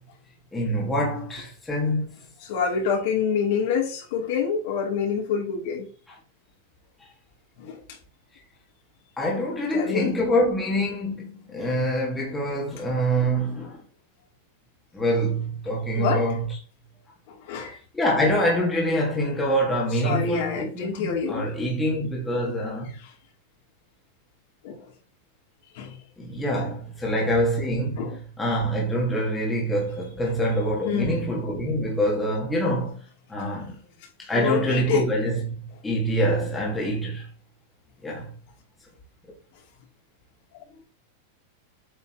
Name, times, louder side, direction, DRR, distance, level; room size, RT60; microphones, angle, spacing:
voice 1, 0.5-2.0 9.2-13.8 14.9-16.5 17.9-22.9 26.2-28.1 28.4-33.0 33.3-33.8 34.2-37.3 38.0-38.3, equal, 10° left, 2.0 m, -25 dB
voice 2, 2.4-5.9 7.6-7.8 9.7-10.1 15.9-16.2 17.3-17.8 20.0-21.5 23.0-23.1 24.6-24.9 25.7-26.0 28.0-28.2 30.8-31.4 34.3-35.1, left 6 dB, 60° left, 3.0 m, -27 dB
8.2 x 5.8 x 3.0 m
supercardioid pair, 155°, 0 cm